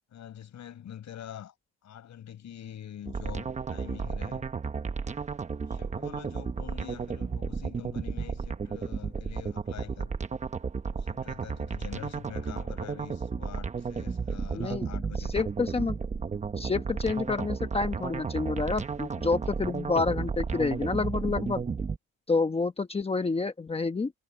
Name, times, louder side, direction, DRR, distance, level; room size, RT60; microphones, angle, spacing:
voice 1, 0.1-1.5 1.8-4.4 5.6-10.1 10.9-15.4, left 10 dB, 50° left, 6.3 m, -45 dB
sound 1, 3.1-22.0, right 5 dB, 20° right, 0.9 m, -33 dB
voice 2, 14.5-14.9 15.3-16.0 16.6-21.6 22.3-24.1, left 4 dB, 15° left, 1.0 m, -28 dB
cardioid pair, 165°, 36 cm